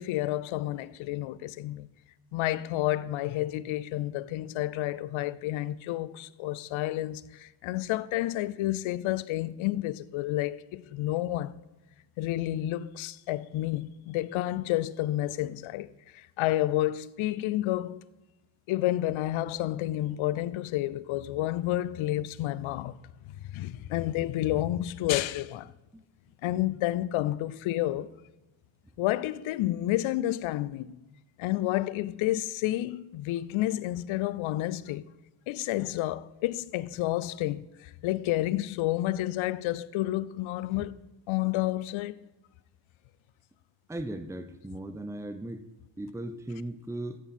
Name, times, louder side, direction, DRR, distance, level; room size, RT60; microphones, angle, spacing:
voice 1, 0.0-1.9 2.3-11.6 12.2-18.0 18.7-23.0 23.5-25.7 26.4-28.1 29.0-31.0 31.4-35.0 35.5-41.0 41.3-42.2, left 15 dB, 75° left, 0.6 m, -30 dB
voice 2, 43.9-45.6 46.0-47.2, right 1 dB, 5° right, 0.8 m, -37 dB
13.5 x 8.1 x 4.4 m
supercardioid pair, 70°, 48 cm